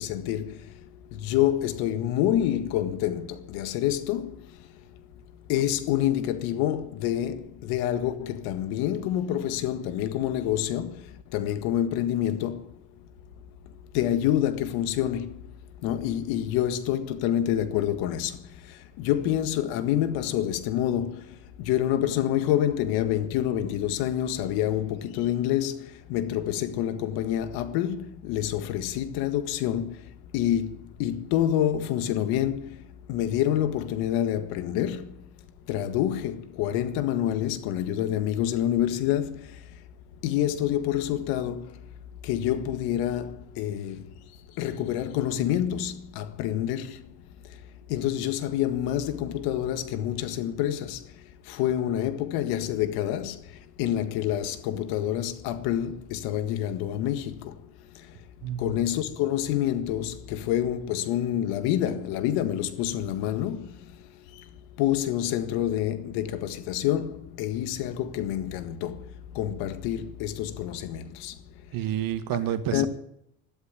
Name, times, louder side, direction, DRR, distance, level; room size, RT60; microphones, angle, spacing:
voice 1, 0.0-5.0 5.5-12.8 13.9-15.5 15.8-35.2 35.7-39.8 40.2-41.9 42.2-47.6 47.9-58.3 58.6-71.4 72.4-72.9, left 11 dB, 75° left, 1.8 m, -28 dB
voice 2, 58.4-58.7 71.7-72.9, right 11 dB, 65° right, 2.0 m, -29 dB
12.5 x 12.5 x 9.2 m
supercardioid pair, 105°, 38 cm